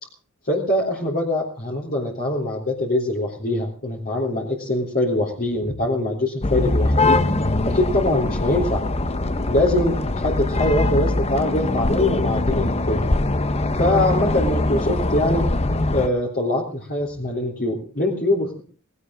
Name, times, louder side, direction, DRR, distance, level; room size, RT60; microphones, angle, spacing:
voice 1, 0.5-7.2 7.6-8.8 9.5-13.1 13.8-15.5 15.9-18.6, left 1 dB, 45° left, -2 dB, 3.5 m, -23 dB
sound 1, 6.4-16.1, left 2 dB, 30° left, 0.9 m, -22 dB
19.0 x 17.5 x 3.8 m, 0.41 s
head